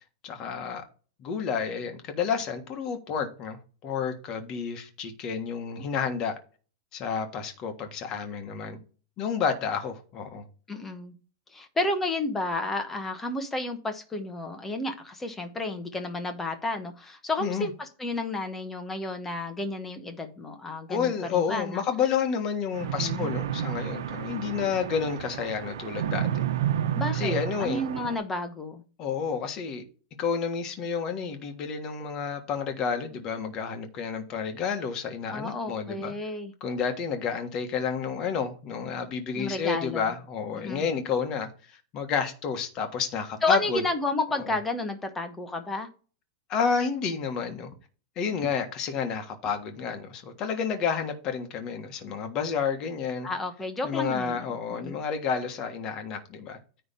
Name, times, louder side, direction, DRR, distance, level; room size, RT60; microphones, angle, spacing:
voice 1, 0.2-0.8 1.2-6.3 6.9-8.8 9.2-10.4 17.4-17.7 20.9-26.3 27.1-27.8 29.0-29.8 30.2-36.1 36.6-43.8 44.4-44.5 46.5-47.7 48.2-53.3 53.8-56.6, left 6 dB, 25° left, 1.4 m, -30 dB
voice 2, 10.7-11.1 11.5-21.8 22.8-23.3 26.9-28.8 35.3-36.5 39.3-40.1 40.6-40.9 43.4-45.9 53.2-55.0, left 2 dB, 10° left, 1.0 m, -31 dB
sound 1, 22.7-28.2, right 10 dB, 80° right, 1.1 m, -31 dB
9.6 x 3.3 x 6.8 m
supercardioid pair, 175°, 2 cm